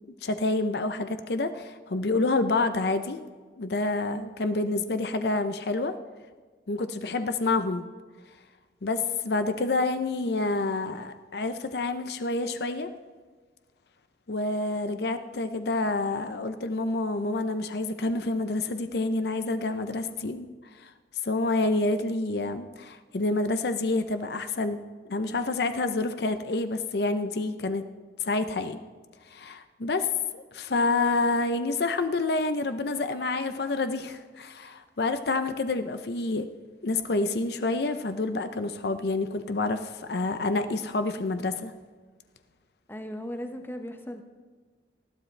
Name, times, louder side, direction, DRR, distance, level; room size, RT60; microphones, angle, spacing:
voice 1, 0.2-3.2 3.6-5.9 6.7-7.8 8.8-12.9 14.3-20.5 20.8-20.9 21.2-24.8 25.1-27.8 28.2-28.8 29.3-36.5 36.8-41.7, left 3 dB, 65° left, 10 dB, 0.6 m, -28 dB
voice 2, 42.9-44.2, equal, 10° left, 5 dB, 0.9 m, -37 dB
19.5 x 13.0 x 3.3 m, 1.4 s
head